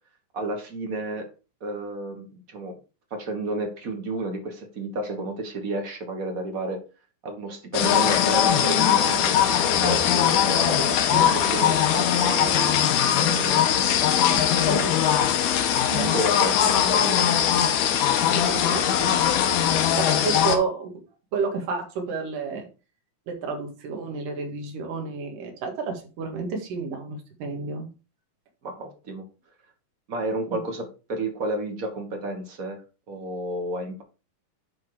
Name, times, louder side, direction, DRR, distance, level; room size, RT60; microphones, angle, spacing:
voice 1, 0.3-1.3 1.6-2.8 3.1-6.8 7.2-12.7 13.1-15.1 15.9-17.5 28.6-29.2 30.1-32.8 33.1-34.0, right 2 dB, 45° right, 3 dB, 1.2 m, -32 dB
sound 1, 7.7-20.6, left 9 dB, 75° left, 2.4 m, -21 dB
voice 2, 11.1-11.7 18.3-19.1 19.9-20.9 21.3-22.7 23.3-27.9, right 4 dB, 80° right, 3 dB, 3.3 m, -30 dB
10.5 x 3.7 x 4.8 m, 0.32 s
omnidirectional pair, 3.8 m